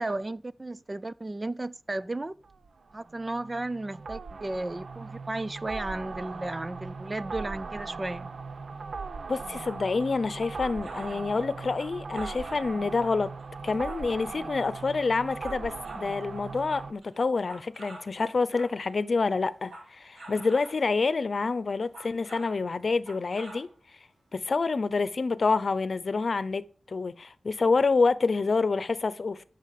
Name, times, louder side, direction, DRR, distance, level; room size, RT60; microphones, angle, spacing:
voice 1, 0.0-2.3 2.9-8.3, right 2 dB, 25° right, 0.4 m, -34 dB
sound 1, 2.4-16.9, right 4 dB, 65° right, 0.7 m, -39 dB
voice 2, 9.3-13.3 13.6-23.7 24.3-29.4, left 4 dB, 50° left, 0.8 m, -27 dB
sound 2, 9.6-11.3 11.7-12.7 13.0-14.4 15.0-16.1 16.4-19.0 19.5-20.9 21.7-22.7 22.9-23.7 24.1-24.2, right 1 dB, 85° right, 3.4 m, -48 dB
11.5 x 6.5 x 6.8 m
wide cardioid pair, 115°, 0 cm